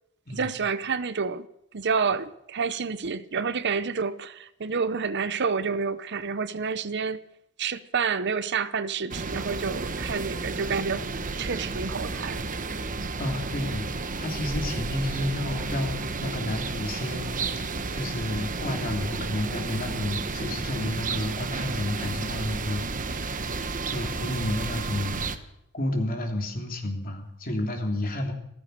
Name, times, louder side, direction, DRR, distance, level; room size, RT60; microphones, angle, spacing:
voice 1, 0.3-1.5 1.7-7.2 7.6-11.1 11.4-12.4, right 5 dB, 55° right, 0.7 m, -29 dB
sound 1, 9.1-25.4, right 3 dB, 40° right, 1.1 m, -32 dB
voice 2, 13.2-17.4 17.9-25.4 25.7-28.3, left 1 dB, 45° left, 3.2 m, -31 dB
15.0 x 15.0 x 6.6 m
head